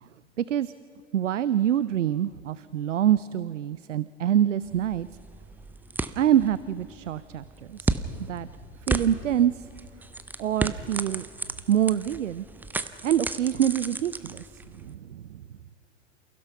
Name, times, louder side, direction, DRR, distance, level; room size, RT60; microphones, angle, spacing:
voice 1, 0.4-0.7 1.1-5.1 6.2-7.9 8.3-8.5 8.9-9.7 10.4-11.3 11.7-12.4 13.0-14.4 14.7-15.4, right 10 dB, 75° right, 16 dB, 0.6 m, -25 dB
sound 1, 4.6-14.9, right 3 dB, 5° right, 0.5 m, -34 dB
28.5 x 16.0 x 5.8 m, 2.7 s
figure-of-eight pair, 100°, 37 cm